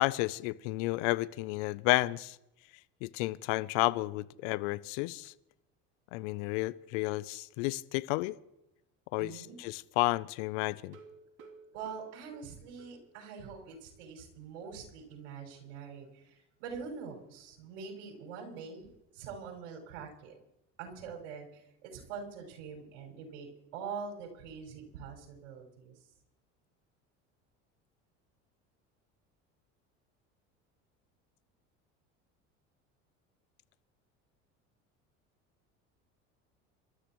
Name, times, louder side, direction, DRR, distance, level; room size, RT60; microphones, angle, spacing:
voice 1, 0.0-2.4 3.0-5.3 6.1-8.4 9.1-11.0, left 21 dB, 75° left, 18 dB, 0.7 m, -31 dB
voice 2, 9.2-9.6 11.7-20.4 20.8-25.9, right 6 dB, 80° right, 1 dB, 6.0 m, -44 dB
sound 1, 10.8-13.4 13.7-13.8 14.2-14.3 14.6-14.7, right 4 dB, 55° right, 3.1 m, -55 dB
26.5 x 13.0 x 3.1 m, 0.87 s
hypercardioid pair, 80°, 36 cm